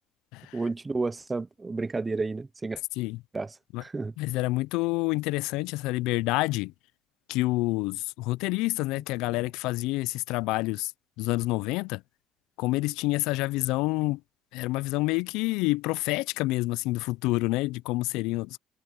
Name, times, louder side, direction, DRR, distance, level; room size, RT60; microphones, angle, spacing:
voice 1, 0.5-2.8 3.3-3.5 3.8-4.1, right 3 dB, 10° right, 0.4 m, -31 dB
voice 2, 4.2-6.7 7.3-10.9 11.2-12.0 12.6-14.2 14.5-18.6, left 20 dB, 75° left, 0.3 m, -28 dB
cardioid pair, 165°, 0 cm